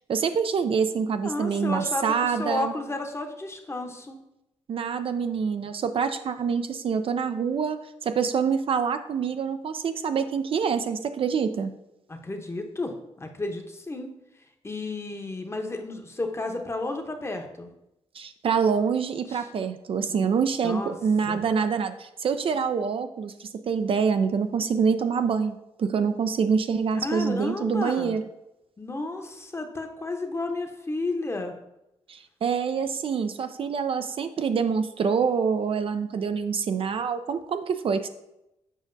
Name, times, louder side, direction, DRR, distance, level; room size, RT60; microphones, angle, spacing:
voice 1, 0.1-2.7 4.7-11.7 18.1-28.2 32.1-38.1, right 6 dB, 50° right, 9 dB, 0.4 m, -26 dB
voice 2, 1.2-4.2 12.1-14.1 14.6-17.7 19.3-19.5 20.1-20.3 20.6-20.9 21.3-21.4 27.0-28.2 28.8-31.5, left 2 dB, 20° left, 4 dB, 0.9 m, -32 dB
7.4 x 4.9 x 2.6 m, 0.88 s
cardioid pair, 75°, 12 cm